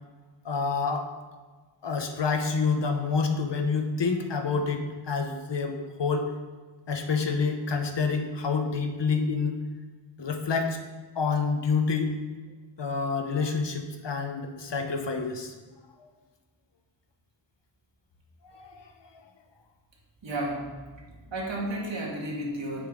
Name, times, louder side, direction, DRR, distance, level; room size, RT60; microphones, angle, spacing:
voice 1, 0.4-1.1 1.8-6.3 6.9-9.5 10.2-10.8 11.2-12.1 12.8-15.5 16.0-16.1 18.4-18.7, left 4 dB, 65° left, 5 dB, 1.1 m, -28 dB
voice 2, 20.2-20.7 21.3-22.9, right 1 dB, 70° right, -2 dB, 2.0 m, -32 dB
9.5 x 7.3 x 3.8 m, 1.4 s
wide cardioid pair, 120°, 46 cm